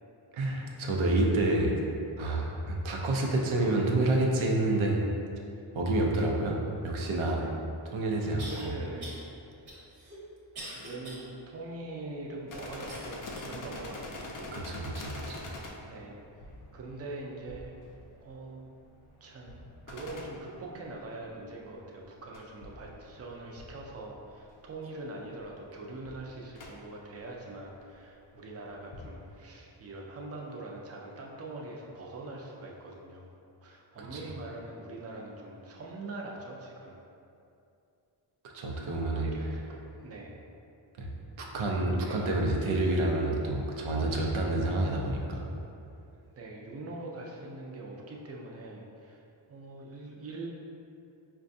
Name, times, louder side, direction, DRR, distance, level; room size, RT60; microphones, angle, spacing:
voice 1, 0.3-1.7 2.2-5.0 5.7-7.4 7.8-8.8 14.5-15.4 34.1-34.2 38.5-39.3 41.0-41.1 41.4-45.5, right 2 dB, 85° right, -1 dB, 0.6 m, -28 dB
sound 1, 7.4-7.5 8.4-8.6 9.0-9.2 9.7-11.3 11.7-11.8 12.9-13.6 14.2-14.3 15.1-15.2, right 1 dB, 55° right, 1.0 m, -44 dB
voice 2, 8.4-9.2 10.7-14.5 14.9-15.5 15.8-16.2 16.7-17.8 18.2-18.6 19.2-33.3 33.6-37.0 39.2-40.3 41.7-41.8 42.1-42.3 46.4-49.2 49.5-50.5, right 2 dB, 35° right, -1 dB, 0.4 m, -43 dB
sound 2, 12.5-21.4 22.3-24.7 25.0-25.1 25.4-25.6 26.1-26.7 27.9-28.1 28.7-29.3, left 2 dB, 45° left, 0.5 m, -45 dB
5.0 x 2.3 x 2.6 m, 2.7 s
wide cardioid pair, 120°, 46 cm